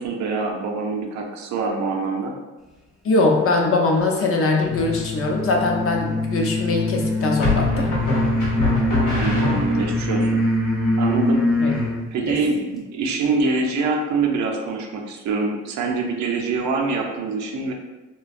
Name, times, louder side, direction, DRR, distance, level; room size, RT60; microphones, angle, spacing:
voice 1, 0.0-2.4 9.1-10.4 11.0-11.5 12.1-17.7, right 4 dB, 70° right, 2 dB, 0.5 m, -25 dB
voice 2, 3.0-7.9 11.6-11.7 12.3-12.4, left 3 dB, 50° left, 0 dB, 0.5 m, -21 dB
sound 1, 4.6-12.0, left 1 dB, ahead, 0.5 m, -23 dB
sound 2, 4.8-5.3 7.4-10.1, left 3 dB, 85° left, 0.8 m, -24 dB
2.5 x 2.1 x 2.4 m, 1.1 s
cardioid pair, 90°, 30 cm